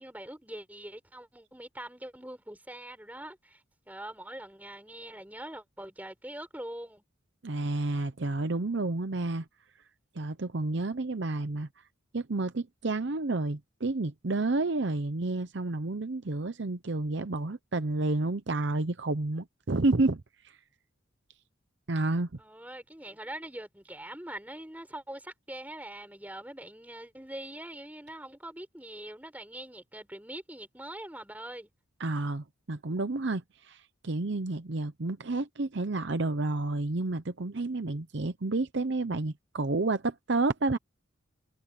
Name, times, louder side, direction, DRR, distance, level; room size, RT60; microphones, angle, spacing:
voice 1, 0.0-7.0 22.4-31.7, right 1 dB, 10° right, 4.8 m, -43 dB
voice 2, 7.4-9.4 10.1-11.7 12.1-20.6 21.9-22.3 32.0-40.8, right 2 dB, 55° right, 0.8 m, -30 dB
head